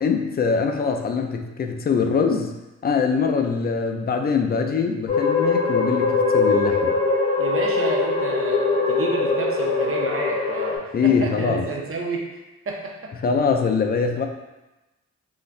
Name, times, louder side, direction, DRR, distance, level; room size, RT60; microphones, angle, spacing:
voice 1, 0.0-2.5 2.8-7.0 10.9-11.6 13.2-14.3, left 5 dB, 35° left, 4 dB, 0.4 m, -23 dB
sound 1, 5.1-10.8, left 4 dB, 50° left, 1.5 m, -22 dB
voice 2, 7.4-12.2 12.7-13.1, right 3 dB, 50° right, 0 dB, 0.5 m, -30 dB
3.8 x 2.0 x 2.5 m, 1.0 s
cardioid pair, 65°, 30 cm